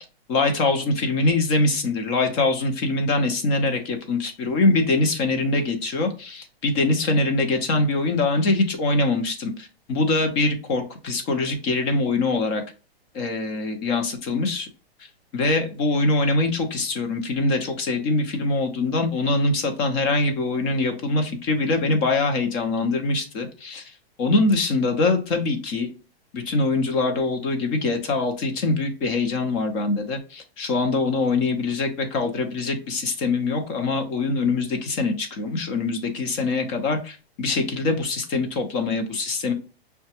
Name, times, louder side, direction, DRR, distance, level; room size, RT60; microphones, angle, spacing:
voice 1, 0.0-12.6 13.1-14.7 15.3-23.9 24.2-25.9 26.3-39.5, left 3 dB, 30° left, 5 dB, 0.6 m, -23 dB
5.6 x 2.2 x 2.8 m, 0.35 s
hypercardioid pair, 155°, 31 cm